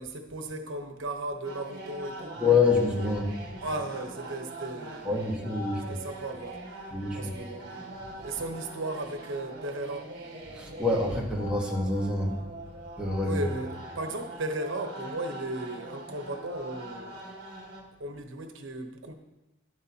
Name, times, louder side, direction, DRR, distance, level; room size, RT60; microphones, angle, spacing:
voice 1, 0.0-2.4 3.6-5.3 5.9-6.6 7.1-7.7 8.2-10.1 13.2-17.2 18.0-19.1, right 2 dB, 85° right, 5 dB, 1.1 m, -35 dB
sound 1, 1.4-17.8, right 1 dB, 55° right, 1.8 m, -43 dB
voice 2, 2.4-3.4 5.0-5.9 6.9-7.3 10.5-12.4 13.0-13.4, left 3 dB, 5° right, -3 dB, 1.4 m, -26 dB
12.0 x 9.8 x 2.9 m, 1.0 s
head